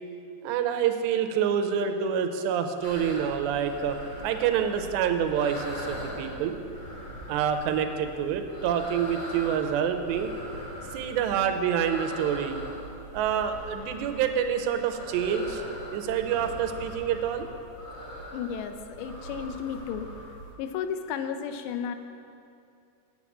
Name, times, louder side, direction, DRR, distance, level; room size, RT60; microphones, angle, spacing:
voice 1, 0.4-4.0 4.2-6.6 7.3-10.3 10.9-12.6 13.1-15.6 15.9-17.5, right 8 dB, 90° right, 7 dB, 2.8 m, -27 dB
sound 1, 2.8-20.5, equal, 35° left, 1.2 m, -41 dB
voice 2, 18.3-20.1 20.6-22.0, left 7 dB, 90° left, 8 dB, 2.8 m, -33 dB
8.4 x 7.7 x 8.5 m, 2.5 s
omnidirectional pair, 4.9 m